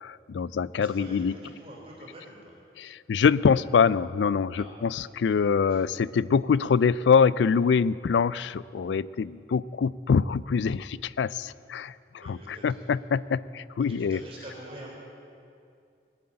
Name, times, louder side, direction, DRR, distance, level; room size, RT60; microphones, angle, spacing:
voice 1, 0.0-1.4 2.8-14.2, left 6 dB, 85° left, 19 dB, 0.4 m, -24 dB
voice 2, 0.8-2.4 4.5-4.7 5.2-5.3 5.7-5.8 12.2-12.9 14.0-15.0, right 1 dB, 30° right, -3 dB, 3.7 m, -45 dB
19.5 x 7.8 x 8.8 m, 2.5 s
head